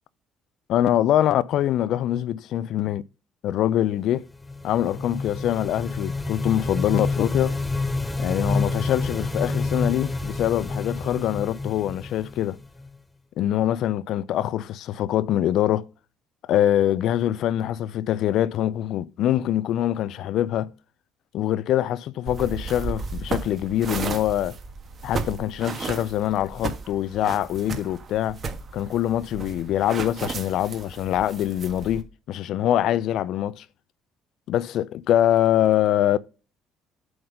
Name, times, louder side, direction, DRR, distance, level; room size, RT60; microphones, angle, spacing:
voice 1, 0.7-3.0 3.4-4.2 4.6-7.6 8.2-12.6 13.4-15.9 16.5-20.7 21.3-24.6 25.0-28.4 28.7-33.6 34.5-36.2, left 12 dB, 70° left, 0.5 m, -24 dB
sound 1, 4.2-12.9, left 3 dB, 10° left, 0.8 m, -29 dB
sound 2, 22.3-32.0, right 4 dB, 45° right, 1.5 m, -34 dB
7.8 x 4.0 x 5.3 m
cardioid pair, 90°, 0 cm